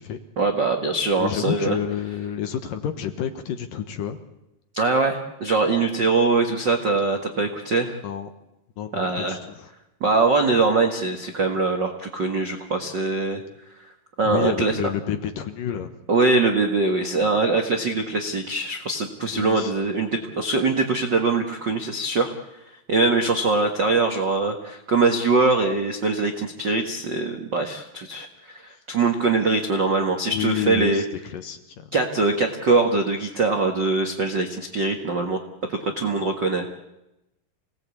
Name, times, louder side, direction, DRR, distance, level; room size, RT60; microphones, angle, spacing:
voice 1, 0.4-1.8 4.7-8.0 8.9-9.4 10.0-13.4 14.2-14.8 16.1-22.3 22.9-31.0 31.9-35.4 35.7-36.7, right 3 dB, 55° right, 4 dB, 1.2 m, -22 dB
voice 2, 1.2-4.2 8.0-8.3 8.8-9.7 14.2-15.9 19.3-19.7 30.3-31.8, left 9 dB, 65° left, 8 dB, 2.5 m, -29 dB
27.5 x 18.5 x 8.5 m, 0.91 s
omnidirectional pair, 4.8 m